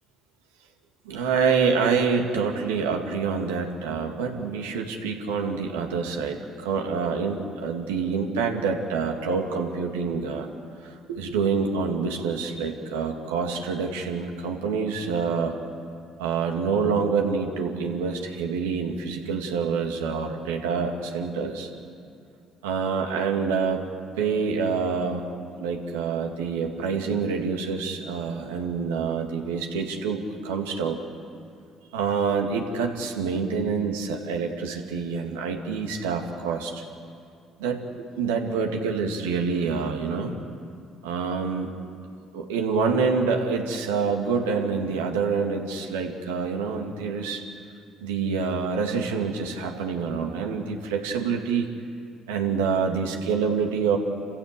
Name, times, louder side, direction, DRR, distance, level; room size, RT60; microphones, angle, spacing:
voice 1, 1.1-10.5 10.8-15.5 16.2-21.7 22.6-23.8 24.2-25.3 25.6-31.0 31.9-36.8 37.6-40.3 41.0-41.7 42.3-47.4 48.0-51.7 52.3-54.0, right 5 dB, 90° right, 3 dB, 2.3 m, -26 dB
28.5 x 15.5 x 8.3 m, 2.4 s
hypercardioid pair, 60°, 0 cm